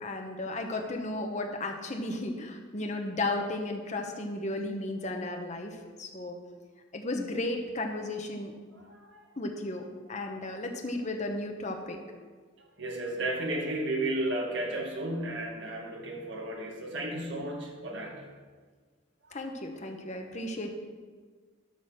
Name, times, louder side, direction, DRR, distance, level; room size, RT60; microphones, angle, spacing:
voice 1, 0.0-6.4 6.9-8.5 9.4-9.8 10.1-12.0 19.3-20.7, left 2 dB, 35° left, 3 dB, 1.0 m, -34 dB
voice 2, 8.7-9.3 12.8-18.3, right 1 dB, 60° right, 0 dB, 1.9 m, -33 dB
12.0 x 4.1 x 6.4 m, 1.5 s
head